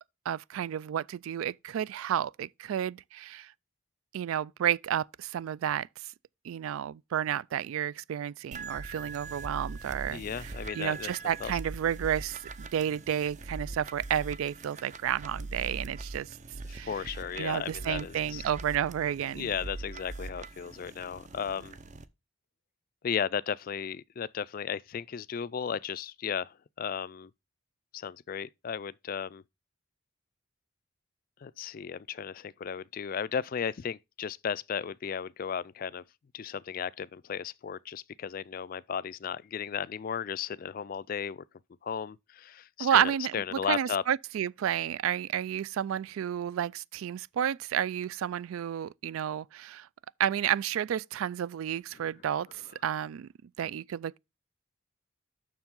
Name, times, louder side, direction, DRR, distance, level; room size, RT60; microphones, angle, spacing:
voice 1, 0.3-3.5 4.1-5.9 6.4-16.3 16.7-16.9 17.4-19.5 42.8-49.9 50.2-53.3 53.6-54.2, right 9 dB, 85° right, 0.3 m, -31 dB
sound 1, 8.5-22.0, right 3 dB, 35° right, 0.6 m, -42 dB
voice 2, 10.1-11.1 11.4-11.5 16.7-18.4 19.3-21.8 23.0-27.3 27.9-29.4 31.4-36.0 36.3-41.4 41.8-44.0, left 7 dB, 45° left, 0.3 m, -35 dB
7.1 x 6.3 x 3.7 m
head